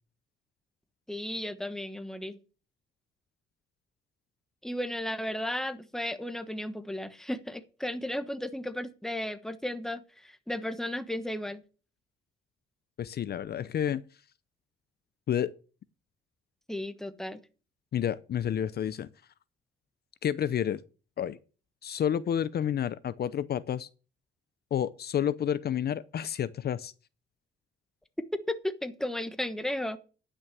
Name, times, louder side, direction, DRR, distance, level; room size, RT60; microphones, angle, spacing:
voice 1, 1.1-2.4 4.6-11.6 16.7-17.4 28.5-30.0, left 1 dB, ahead, 1.2 m, -34 dB
voice 2, 13.0-14.0 15.3-15.5 17.9-19.1 20.2-20.8 21.2-21.4 21.8-23.9 24.7-26.9, left 9 dB, 55° left, 0.6 m, -30 dB
10.5 x 6.3 x 6.9 m
cardioid pair, 90°, 20 cm